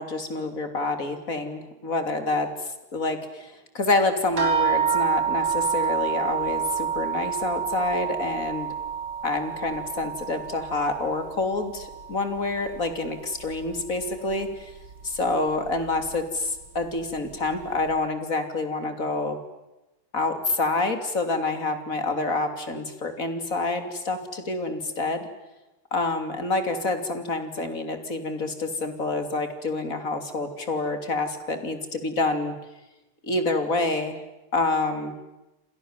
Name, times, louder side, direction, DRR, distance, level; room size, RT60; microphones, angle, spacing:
voice 1, 0.0-8.7 9.2-14.7 15.0-19.4 20.1-25.3 25.9-32.5 33.2-34.1 34.5-35.1, left 3 dB, 40° left, 8 dB, 3.4 m, -27 dB
sound 1, 4.4-13.2 13.5-14.4 15.1-15.2 15.7-15.8, right 7 dB, 65° right, 5.2 m, -29 dB
29.5 x 27.5 x 7.4 m, 1.0 s
omnidirectional pair, 2.3 m